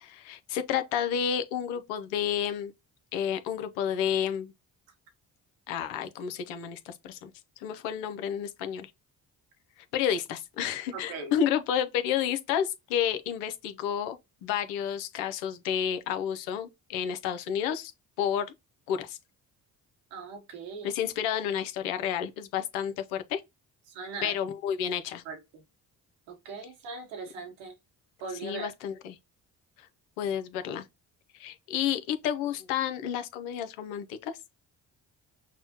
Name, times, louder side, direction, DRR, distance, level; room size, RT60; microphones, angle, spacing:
voice 1, 0.0-2.7 3.1-4.5 5.7-7.3 7.6-8.9 9.9-17.9 18.2-18.5 18.9-19.2 20.8-23.4 24.2-25.2 28.4-29.2 30.2-30.8 31.3-34.3, left 9 dB, 90° left, 0.7 m, -30 dB
voice 2, 10.9-11.4 20.1-20.9 23.9-24.3 25.2-25.6 26.3-27.7 28.2-28.7, right 4 dB, 85° right, 1.2 m, -40 dB
6.0 x 2.1 x 2.8 m
hypercardioid pair, 50°, 47 cm